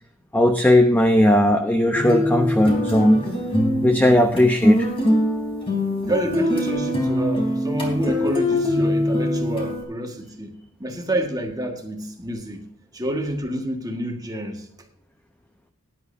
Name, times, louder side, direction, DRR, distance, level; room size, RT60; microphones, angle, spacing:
voice 1, 0.3-3.2 3.8-4.9, left 1 dB, 10° left, 0.8 m, -17 dB
sound 1, 1.9-9.8, left 1 dB, 25° left, 3.9 m, -22 dB
voice 2, 5.9-10.5 10.8-12.6 12.9-14.7, equal, 20° right, 1.7 m, -28 dB
19.0 x 10.5 x 2.7 m
head